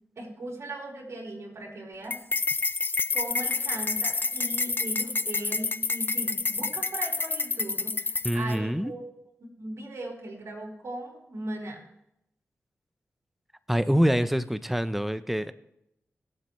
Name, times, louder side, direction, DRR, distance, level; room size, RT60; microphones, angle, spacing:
voice 1, 0.2-2.2 3.1-9.0 9.4-11.8, right 1 dB, 65° right, -2 dB, 4.5 m, -38 dB
sound 1, 2.1-8.5, left 3 dB, 40° left, 0.6 m, -28 dB
voice 2, 8.2-8.9 13.7-15.5, equal, 5° right, 12 dB, 0.8 m, -25 dB
23.5 x 7.9 x 3.2 m, 0.83 s
cardioid pair, 45°, 5 cm